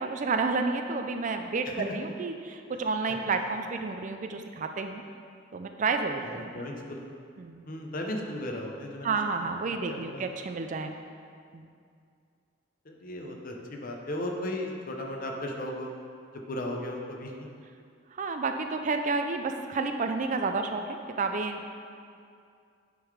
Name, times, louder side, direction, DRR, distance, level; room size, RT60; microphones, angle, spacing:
voice 1, 0.0-5.0 5.5-6.5 7.4-7.7 9.0-10.9 11.5-11.7 18.1-21.7, right 4 dB, 40° right, 6 dB, 0.4 m, -30 dB
voice 2, 6.5-7.1 7.7-9.2 9.9-10.0 12.9-15.9 16.3-17.5, left 1 dB, 45° left, 1 dB, 0.8 m, -35 dB
9.7 x 3.8 x 4.8 m, 2.3 s
head